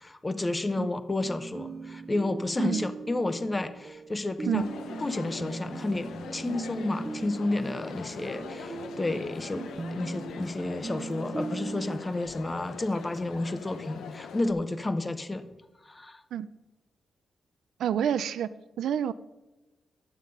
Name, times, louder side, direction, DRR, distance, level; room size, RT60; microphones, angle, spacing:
voice 1, 0.0-4.7 5.0-15.4 15.8-16.2, left 2 dB, 20° left, 11 dB, 0.8 m, -31 dB
sound 1, 1.2-12.0, right 3 dB, 25° right, 0.4 m, -39 dB
Crowd, 4.6-14.5, left 6 dB, 85° left, 0.8 m, -42 dB
voice 2, 17.8-18.5 18.8-19.1, right 9 dB, 90° right, 15 dB, 0.4 m, -28 dB
11.5 x 7.2 x 5.3 m, 1.1 s
cardioid pair, 110°, 0 cm